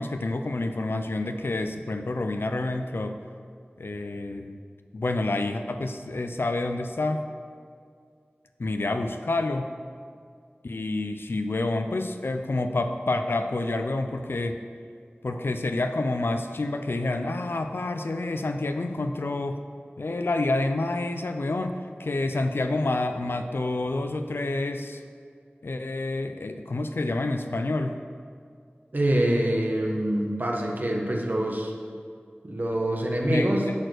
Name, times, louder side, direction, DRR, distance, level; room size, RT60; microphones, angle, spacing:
voice 1, 0.0-3.2 3.8-4.6 4.9-7.2 8.6-9.7 10.6-14.6 15.2-19.6 20.0-25.0 25.6-28.0 33.3-33.7, left 2 dB, 75° left, 6 dB, 0.5 m, -28 dB
voice 2, 28.9-31.7 32.4-33.7, right 1 dB, 50° right, 0 dB, 1.3 m, -25 dB
10.5 x 4.4 x 6.5 m, 2.2 s
wide cardioid pair, 55°, 4 cm